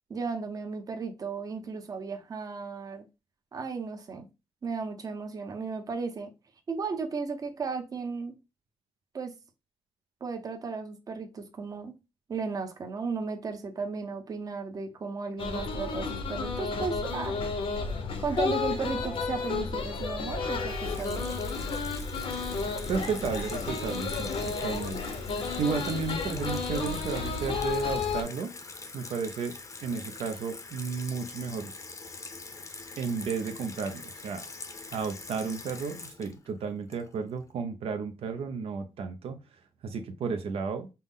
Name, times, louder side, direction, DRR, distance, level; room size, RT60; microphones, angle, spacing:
voice 1, 0.1-3.1 3.5-4.3 4.6-6.3 6.7-8.3 9.1-9.3 10.2-11.9 12.3-17.4 18.2-21.3, right 4 dB, 40° right, 0.7 m, -35 dB
sound 1, 15.4-28.2, left 4 dB, 65° left, 0.8 m, -32 dB
Water tap faucet / Sink (filling or washing), 20.7-37.4, left 3 dB, 35° left, 0.6 m, -44 dB
voice 2, 22.9-25.0 25.6-28.5 28.9-31.7 33.0-34.4 34.9-40.9, right 5 dB, 75° right, 0.5 m, -33 dB
5.4 x 2.1 x 3.6 m
wide cardioid pair, 130°, 10 cm